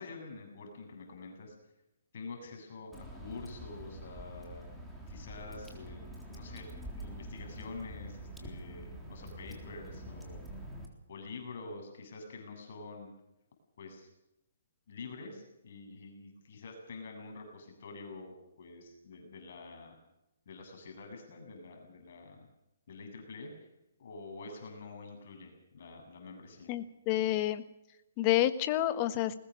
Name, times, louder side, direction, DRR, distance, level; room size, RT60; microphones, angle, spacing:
voice 1, 0.0-1.5 2.1-4.6 5.1-6.7 6.9-10.4 11.1-13.1 13.8-14.1 14.9-19.9 20.5-22.4 22.9-23.7 24.0-26.7, left 3 dB, 55° left, 3 dB, 7.8 m, -47 dB
Water / Drip, 2.9-10.9, equal, 5° right, 3.7 m, -46 dB
voice 2, 26.7-27.6 28.2-29.3, left 13 dB, 30° left, 11 dB, 1.5 m, -29 dB
21.0 x 20.0 x 6.5 m, 0.87 s
hypercardioid pair, 155°, 0 cm